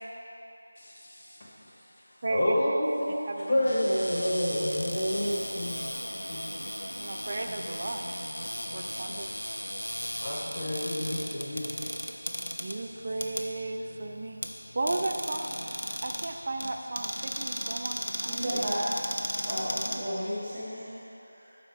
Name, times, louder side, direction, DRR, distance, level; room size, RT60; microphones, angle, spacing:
voice 1, 0.8-1.1 1.4-1.5 2.3-5.9 6.3-6.4 10.2-11.7, left 1 dB, 30° left, -6 dB, 1.1 m, -29 dB
voice 2, 2.2-2.5 3.3-3.6 7.0-8.0 8.7-9.3 12.6-14.4 14.7-18.7, right 2 dB, 35° right, 3 dB, 0.6 m, -35 dB
Cupboard open or close, 3.6-20.6, equal, 85° left, 0.8 m, -36 dB
voice 3, 18.2-18.8 19.4-21.6, equal, 15° right, -11 dB, 1.3 m, -34 dB
11.5 x 4.6 x 4.5 m, 2.9 s
figure-of-eight pair, 170°, 0 cm